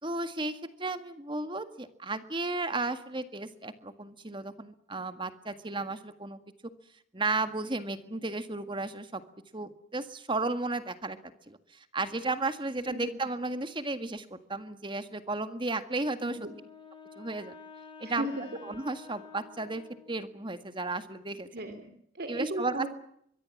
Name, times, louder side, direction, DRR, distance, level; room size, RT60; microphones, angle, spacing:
voice 1, 0.0-6.4 7.1-9.2 9.5-11.2 11.5-16.4 17.2-17.6 18.0-18.3 18.6-19.8 20.1-21.5 22.3-22.9, right 3 dB, 25° right, 10 dB, 1.8 m, -34 dB
voice 2, 12.9-13.2 16.2-16.5 18.0-18.4 21.5-22.9, right 1 dB, 50° right, 8 dB, 3.0 m, -36 dB
Wind instrument woodwind instrument, 16.2-20.5, left 5 dB, 25° left, 5.2 m, -50 dB
25.0 x 23.5 x 7.3 m, 0.71 s
head